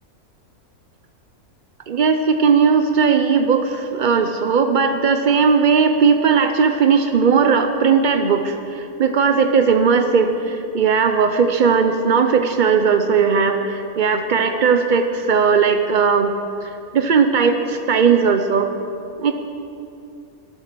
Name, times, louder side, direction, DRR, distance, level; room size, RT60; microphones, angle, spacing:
voice 1, 1.9-16.3 16.6-18.7 19.2-19.3, right 5 dB, 80° right, 7 dB, 0.4 m, -17 dB
18.5 x 7.6 x 6.8 m, 2.7 s
omnidirectional pair, 1.7 m